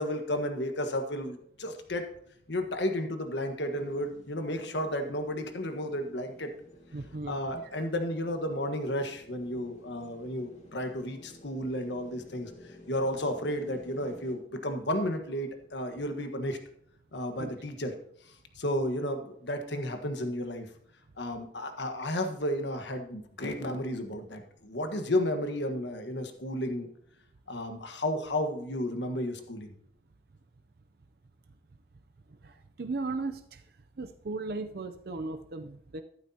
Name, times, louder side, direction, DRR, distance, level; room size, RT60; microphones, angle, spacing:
voice 1, 0.0-2.1 2.5-6.5 7.3-12.5 12.9-16.6 17.1-17.9 18.2-20.7 21.2-26.9 27.5-29.7, left 1 dB, 75° left, 6 dB, 1.4 m, -32 dB
sound 1, 3.7-14.3, left 1 dB, 40° left, 1.9 m, -54 dB
voice 2, 6.9-7.4 17.4-17.5 32.4-33.6 34.0-36.0, right 3 dB, 55° right, 7 dB, 0.6 m, -36 dB
13.5 x 11.5 x 2.9 m, 0.68 s
head